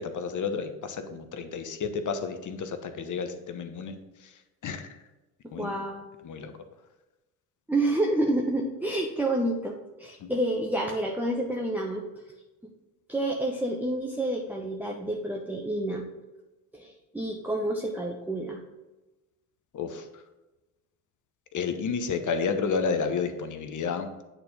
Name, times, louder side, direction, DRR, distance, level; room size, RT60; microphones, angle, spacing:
voice 1, 0.0-4.0 4.6-4.9 5.5-5.7 6.2-6.5 10.2-10.3 19.7-20.0 21.5-24.1, left 5 dB, 40° left, 8 dB, 1.0 m, -31 dB
voice 2, 5.6-6.1 7.7-12.0 13.1-16.1 16.7-18.6, right 1 dB, 5° right, -1 dB, 1.0 m, -29 dB
8.8 x 4.3 x 5.3 m, 1.1 s
hypercardioid pair, 55°, 48 cm